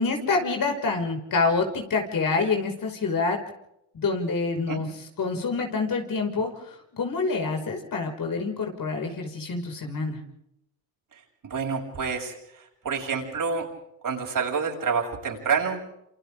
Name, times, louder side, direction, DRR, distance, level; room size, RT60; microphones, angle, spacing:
voice 1, 0.0-3.4 3.9-10.2, left 4 dB, 45° left, 3 dB, 5.8 m, -27 dB
voice 2, 11.1-13.7 14.0-15.8, right 5 dB, 45° right, 0 dB, 7.4 m, -28 dB
28.5 x 28.0 x 3.7 m, 0.79 s
hypercardioid pair, 65°, 46 cm